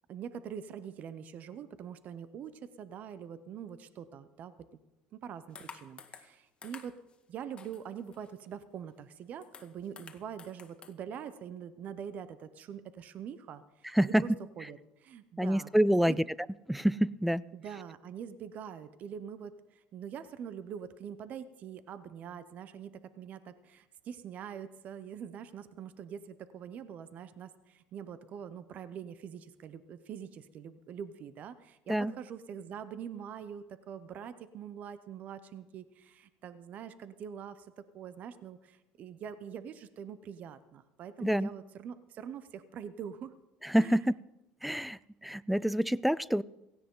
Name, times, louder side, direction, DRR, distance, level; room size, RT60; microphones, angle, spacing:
voice 1, 0.1-4.7 5.1-7.0 7.3-14.3 14.6-16.2 17.5-43.3 43.8-44.0, right 8 dB, 50° right, 13 dB, 0.9 m, -44 dB
sound 1, 5.5-6.4 6.6-7.1 7.6-8.5 8.9-9.0 9.2-10.9, left 5 dB, 30° left, 1.6 m, -51 dB
voice 2, 13.9-14.2 15.4-16.2 16.7-17.4 31.9-32.1 41.2-41.5 43.6-44.1 44.6-46.4, equal, ahead, 20 dB, 0.4 m, -27 dB
17.0 x 16.0 x 3.9 m, 0.94 s
supercardioid pair, 85°, 3 cm